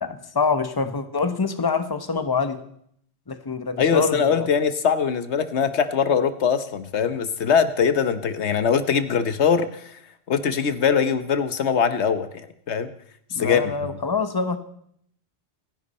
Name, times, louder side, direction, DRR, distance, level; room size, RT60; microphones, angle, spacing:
voice 1, 0.0-2.6 3.3-4.5 13.3-14.6, left 4 dB, 20° left, 9 dB, 1.0 m, -25 dB
voice 2, 3.8-10.0 10.3-12.9 13.3-13.7, left 6 dB, 80° left, 11 dB, 1.2 m, -22 dB
26.0 x 10.5 x 4.2 m, 0.67 s
omnidirectional pair, 1.1 m